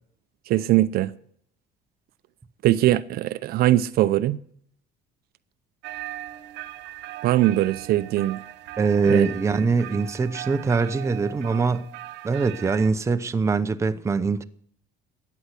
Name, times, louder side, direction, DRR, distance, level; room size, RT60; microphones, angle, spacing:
voice 1, 0.5-1.1 2.6-4.4 7.2-8.4 9.1-9.3, right 14 dB, 60° right, 0.7 m, -21 dB
sound 1, 5.8-12.9, right 14 dB, 80° right, 1.1 m, -39 dB
voice 2, 8.8-11.9 12.2-14.4, right 4 dB, 15° right, 0.7 m, -23 dB
14.5 x 9.5 x 8.2 m
cardioid pair, 145°, 18 cm